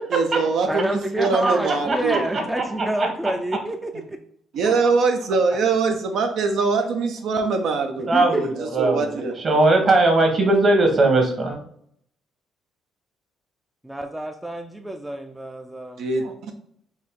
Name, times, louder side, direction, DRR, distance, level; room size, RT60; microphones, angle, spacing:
voice 1, 0.1-2.2 3.9-4.0 4.5-9.3 16.0-16.5, right 4 dB, 70° right, 4 dB, 0.5 m, -23 dB
voice 2, 0.7-4.2 5.5-5.6 8.1-8.4 13.8-16.0, right 1 dB, 5° right, 4 dB, 0.4 m, -28 dB
voice 3, 1.4-3.1 8.1-9.0 9.4-11.6, right 2 dB, 40° right, 2 dB, 1.2 m, -20 dB
4.4 x 2.7 x 3.6 m, 0.67 s
cardioid pair, 105°, 0 cm